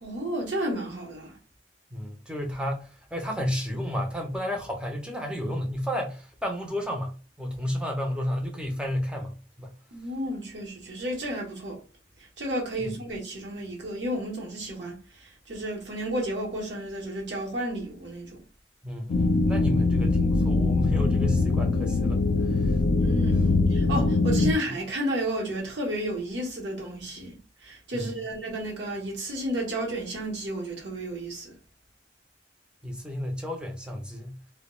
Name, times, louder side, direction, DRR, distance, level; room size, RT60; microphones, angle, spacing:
voice 1, 0.0-1.4 9.9-11.8 12.4-18.4 22.9-31.5, right 1 dB, 65° right, 0.9 m, -32 dB
voice 2, 1.9-9.7 12.8-12.9 18.8-22.8 23.0-23.3 27.9-28.2 32.8-34.4, equal, 5° right, 0.5 m, -32 dB
sound 1, 19.1-24.5, left 3 dB, 55° left, 0.3 m, -22 dB
2.2 x 2.1 x 3.0 m
head